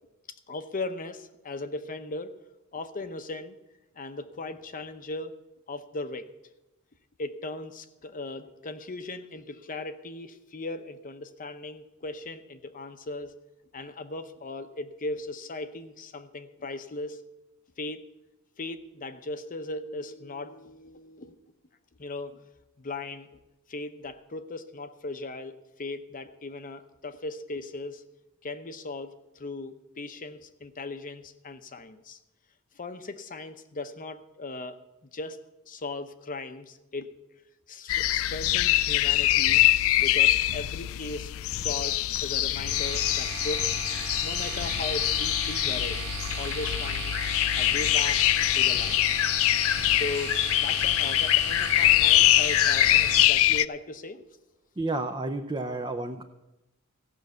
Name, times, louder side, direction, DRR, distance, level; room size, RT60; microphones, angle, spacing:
voice 1, 0.5-2.3 2.7-3.6 4.0-5.3 5.7-6.3 7.2-13.3 13.7-17.2 17.8-18.1 18.6-21.4 22.0-22.4 22.8-23.3 23.7-28.0 28.4-32.2 32.7-34.8 35.1-35.4 35.7-37.1 37.7-39.7 39.9-43.7 44.2-46.1 46.4-47.1 47.6-49.0 49.9-54.2, left 2 dB, 40° left, 9 dB, 0.8 m, -38 dB
sound 1, 37.9-53.7, left 14 dB, 65° left, 0.4 m, -24 dB
sound 2, 42.6-53.2, right 5 dB, 90° right, 1.4 m, -37 dB
voice 2, 54.8-56.2, right 2 dB, 20° right, 4 dB, 0.6 m, -31 dB
15.0 x 6.1 x 7.9 m, 0.97 s
head